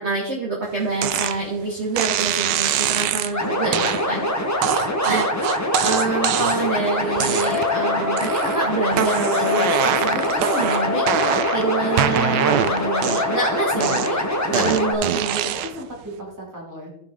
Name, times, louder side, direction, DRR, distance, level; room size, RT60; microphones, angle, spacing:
voice 1, 0.0-4.3 5.0-11.0 11.5-15.6, right 3 dB, 35° right, -4 dB, 1.6 m, -27 dB
sound 1, 1.0-1.4 2.0-3.3 3.7-4.0 4.6-6.7 7.2-7.8 8.2-8.6 8.9-11.6 12.0-13.4 13.8-15.8, right 11 dB, 70° right, 1.1 m, -23 dB
sound 2, 3.3-14.9, left 1 dB, 20° left, 0.5 m, -24 dB
voice 2, 3.6-4.2 14.5-14.7 15.5-16.9, equal, 10° right, -1 dB, 2.1 m, -34 dB
Wind instrument woodwind instrument, 7.4-14.1, left 9 dB, 70° left, 2.2 m, -30 dB
15.5 x 5.1 x 3.6 m, 0.78 s
omnidirectional pair, 2.2 m